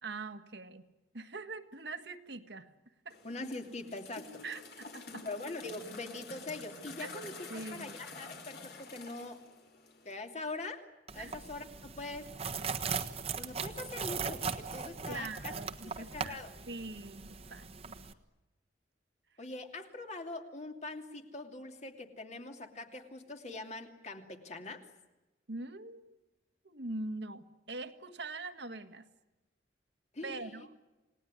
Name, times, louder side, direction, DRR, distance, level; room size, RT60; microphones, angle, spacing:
voice 1, 0.0-0.8 1.1-2.7 3.0-3.2 4.4-5.3 7.0-7.9 11.2-11.4 15.1-16.4 16.7-18.0 25.5-26.2 26.6-29.1 30.2-30.7, right 3 dB, 65° right, 9 dB, 1.7 m, -43 dB
sound 1, 3.1-10.2, left 3 dB, 55° left, 4.0 m, -49 dB
voice 2, 3.2-4.4 5.2-9.4 10.0-10.8 11.1-12.3 13.4-15.5 15.8-16.5 19.4-24.9 30.1-30.7, left 2 dB, 40° left, 4 dB, 2.7 m, -43 dB
sound 2, 11.1-18.1, right 5 dB, 35° right, 1.4 m, -39 dB
29.0 x 19.0 x 9.7 m, 1.1 s
head